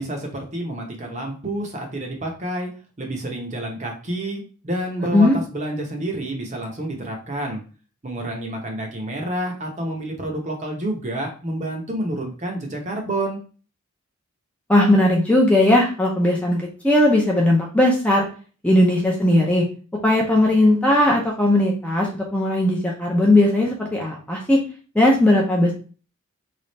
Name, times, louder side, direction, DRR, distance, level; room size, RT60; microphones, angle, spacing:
voice 1, 0.0-2.7 3.0-7.6 8.0-13.4, right 1 dB, 30° right, 2 dB, 0.7 m, -29 dB
voice 2, 14.7-18.2 18.6-19.6 20.0-24.6 24.9-25.7, left 1 dB, 5° left, -2 dB, 0.5 m, -18 dB
3.3 x 2.4 x 3.9 m, 0.38 s
head